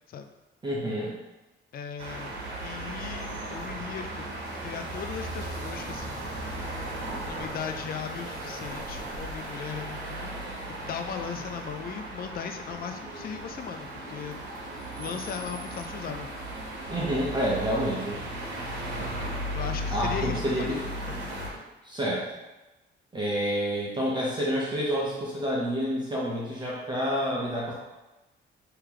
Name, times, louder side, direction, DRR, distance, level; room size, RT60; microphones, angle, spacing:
voice 1, 0.6-1.1 16.9-18.2 19.9-20.8 21.8-22.2 23.1-27.7, equal, 20° right, -5 dB, 0.9 m, -28 dB
voice 2, 1.7-2.3 2.6-4.3 4.6-6.2 7.2-10.3 10.7-14.4 15.0-16.3 19.5-21.3, left 7 dB, 50° left, 6 dB, 0.4 m, -37 dB
sound 1, 2.0-21.5, right 1 dB, 65° right, 1.2 m, -36 dB
3.3 x 2.9 x 3.7 m, 1.1 s
cardioid pair, 90°, 20 cm